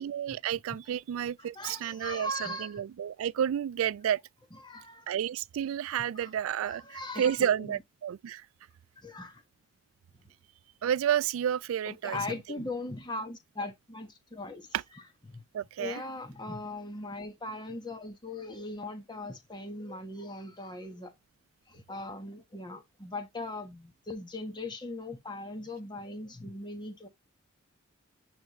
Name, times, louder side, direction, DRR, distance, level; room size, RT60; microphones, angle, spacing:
voice 1, 0.0-4.2 5.1-8.5 10.8-12.2 14.7-14.8 15.5-16.0, right 9 dB, 85° right, 0.3 m, -31 dB
voice 2, 1.4-2.8 4.5-5.1 6.2-6.3 6.6-7.8 9.0-9.4 11.8-14.7 14.9-15.4 15.8-21.1 21.7-27.1, left 2 dB, 20° left, 1.3 m, -39 dB
9.6 x 3.4 x 3.1 m
head